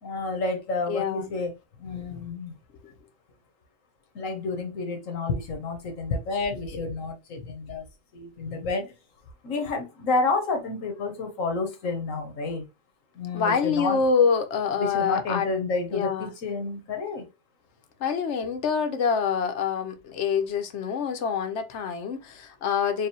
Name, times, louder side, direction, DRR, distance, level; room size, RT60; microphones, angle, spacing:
voice 1, 0.0-1.5 1.8-2.6 4.1-7.8 8.1-8.9 9.4-12.6 13.1-14.0 14.8-17.2, left 3 dB, 90° left, 1.4 m, -30 dB
voice 2, 0.9-1.3 13.3-15.5 15.9-16.3 18.0-23.1, left 6 dB, 65° left, 1.0 m, -26 dB
4.8 x 2.7 x 2.9 m
omnidirectional pair, 1.3 m